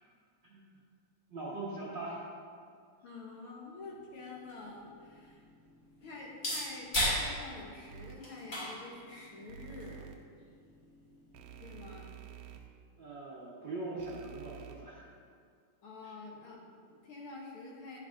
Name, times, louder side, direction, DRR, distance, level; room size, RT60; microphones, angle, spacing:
voice 1, 1.3-2.2 13.0-15.1 16.0-16.1, right 2 dB, 60° right, -7 dB, 1.2 m, -41 dB
voice 2, 3.0-5.5 6.0-10.0 11.6-12.2 15.8-18.0, left 3 dB, 65° left, -3 dB, 1.4 m, -47 dB
sound 1, 3.9-11.9, left 1 dB, 30° left, 2.5 m, -39 dB
sound 2, 7.9-8.2 9.5-10.1 11.3-12.6 14.0-14.7, right 10 dB, 80° right, 1.6 m, -49 dB
10.0 x 10.0 x 2.6 m, 2.2 s
omnidirectional pair, 3.7 m